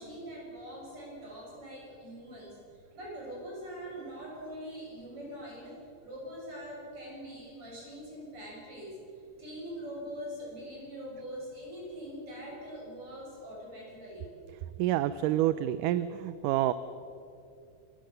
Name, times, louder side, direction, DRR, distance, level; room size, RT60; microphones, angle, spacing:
voice 1, 0.0-14.3, equal, 40° right, -4 dB, 8.6 m, -43 dB
voice 2, 14.8-16.7, right 13 dB, 80° right, 14 dB, 2.2 m, -28 dB
28.0 x 17.0 x 6.7 m, 2.6 s
omnidirectional pair, 3.8 m